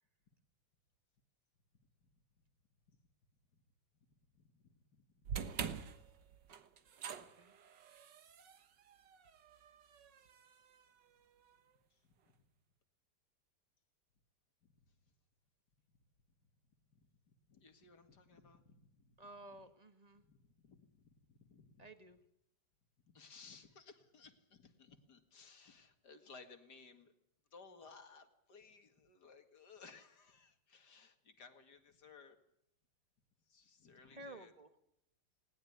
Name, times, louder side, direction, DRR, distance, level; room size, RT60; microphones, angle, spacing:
voice 1, 4.3-5.4 11.9-12.1 14.6-14.7 16.9-19.6 20.2-21.9 23.1-27.1 27.5-32.4 33.5-34.5, left 4 dB, 70° left, 7 dB, 2.6 m, -60 dB
sound 1, 5.2-11.5, right 7 dB, 80° right, 2.0 m, -47 dB
voice 2, 7.1-7.6 19.2-20.2 21.8-22.2 34.0-34.7, right 1 dB, 25° right, 9 dB, 1.6 m, -54 dB
19.5 x 19.5 x 9.5 m, 0.76 s
omnidirectional pair, 1.9 m